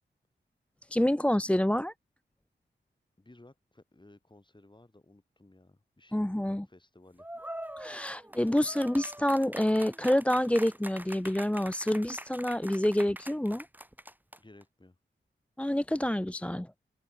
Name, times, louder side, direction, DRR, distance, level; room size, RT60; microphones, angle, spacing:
voice 1, 0.9-1.9 6.1-6.7 7.8-13.7 15.6-16.7, left 1 dB, 5° left, 0.7 m, -27 dB
voice 2, 3.2-7.3 14.4-15.0, left 2 dB, 25° left, 6.6 m, -57 dB
sound 1, 7.2-14.6, right 1 dB, 10° right, 2.5 m, -44 dB
open air
cardioid pair, 60°, 20 cm